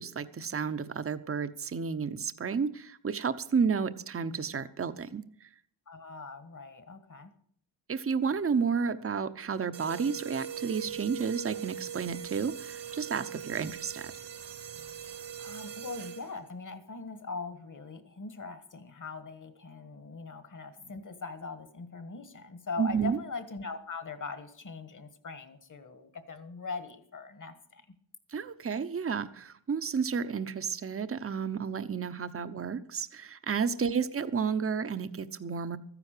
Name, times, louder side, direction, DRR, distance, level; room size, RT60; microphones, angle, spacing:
voice 1, 0.0-5.2 7.9-14.1 22.8-23.2 28.3-35.8, right 6 dB, 30° right, 12 dB, 0.8 m, -31 dB
voice 2, 5.9-7.3 15.1-27.9 33.8-34.1, left 4 dB, 40° left, 10 dB, 1.6 m, -41 dB
sound 1, 9.7-16.5, right 8 dB, 60° right, 1.3 m, -41 dB
13.5 x 9.9 x 6.7 m, 0.62 s
cardioid pair, 95°, 47 cm